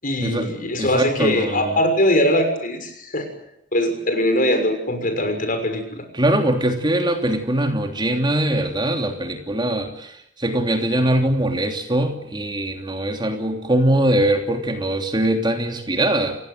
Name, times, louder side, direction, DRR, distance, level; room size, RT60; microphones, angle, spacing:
voice 1, 0.0-3.3 3.7-6.0, left 1 dB, 50° left, 6 dB, 6.3 m, -21 dB
voice 2, 0.8-1.8 6.2-10.1 10.4-16.4, right 1 dB, 25° right, 4 dB, 3.1 m, -22 dB
29.5 x 17.0 x 9.5 m, 0.78 s
head